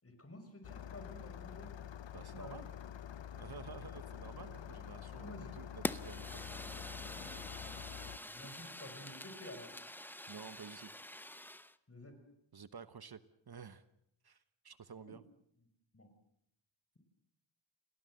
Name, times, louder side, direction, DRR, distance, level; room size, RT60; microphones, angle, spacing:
voice 1, 0.0-1.7 2.4-2.8 5.0-5.5 8.3-9.7 11.9-12.2 15.0-15.1 15.9-16.1, left 1 dB, 30° left, 7 dB, 5.8 m, -51 dB
Engine starting, 0.6-8.2, left 9 dB, 70° left, 0.9 m, -47 dB
voice 2, 2.1-2.7 3.3-6.5 8.6-8.7 10.3-10.9 12.5-13.8 14.2-15.2, right 6 dB, 55° right, 13 dB, 1.1 m, -51 dB
Fire, 5.8-11.7, left 1 dB, 5° left, 0.9 m, -45 dB
29.0 x 18.5 x 7.8 m, 0.74 s
wide cardioid pair, 95°, 46 cm